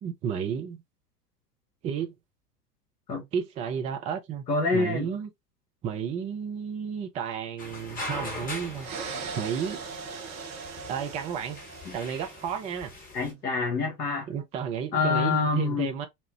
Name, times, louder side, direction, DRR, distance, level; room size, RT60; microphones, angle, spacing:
voice 1, 0.0-0.8 1.8-2.2 3.3-4.4 4.7-5.3 5.8-9.8 10.9-11.6 11.9-12.9 14.3-16.1, right 8 dB, 15° right, 0.3 m, -32 dB
voice 2, 4.5-5.1 11.9-12.0 13.1-14.3 14.9-15.9, left 4 dB, 80° left, 1.4 m, -26 dB
sound 1, 7.6-13.3, left 2 dB, 20° left, 1.0 m, -41 dB
sound 2, 8.8-12.7, right 5 dB, 35° right, 0.8 m, -39 dB
4.1 x 2.0 x 2.8 m
figure-of-eight pair, 80°, 46 cm